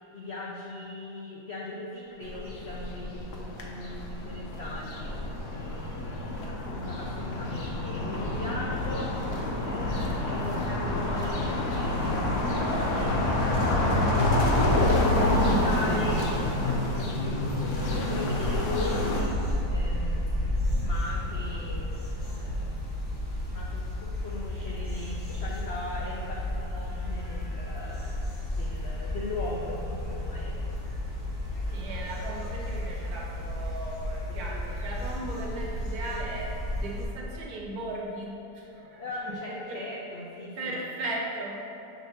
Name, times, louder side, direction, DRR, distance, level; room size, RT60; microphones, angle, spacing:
voice 1, 0.1-5.2 5.5-9.1 9.6-13.2 13.6-20.6 20.8-21.9 22.2-22.7 23.5-28.1 28.6-30.8 39.0-40.7, left 2 dB, 85° left, -3 dB, 0.5 m, -39 dB
sound 1, 2.2-19.2, left 1 dB, 55° left, 0.9 m, -27 dB
sound 2, 18.4-37.0, left 1 dB, 20° left, 0.9 m, -32 dB
voice 2, 31.7-39.8 40.6-41.6, right 2 dB, 65° right, -2 dB, 1.4 m, -37 dB
6.8 x 6.2 x 2.8 m, 3.0 s
omnidirectional pair, 1.9 m